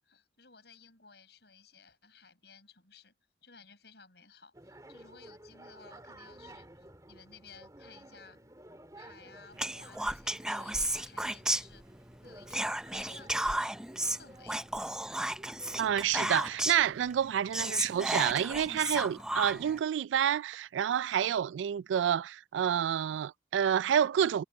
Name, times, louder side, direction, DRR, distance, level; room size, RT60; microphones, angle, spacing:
voice 1, 0.0-3.1 3.4-8.4 9.0-11.9 12.2-13.7 14.1-14.7, left 5 dB, 65° left, 7.6 m, -57 dB
sound 1, 4.5-16.0, right 1 dB, 20° right, 2.5 m, -53 dB
Whispering, 9.6-12.1 12.5-16.9 17.2-17.3 17.5-19.8, right 1 dB, 5° right, 0.5 m, -33 dB
sound 2, 15.8-16.6 17.1-18.0 18.4-19.3 19.8-20.6 21.1-21.2, right 4 dB, 45° right, 7.1 m, -61 dB
voice 2, 15.8-24.4, right 9 dB, 90° right, 0.3 m, -29 dB
head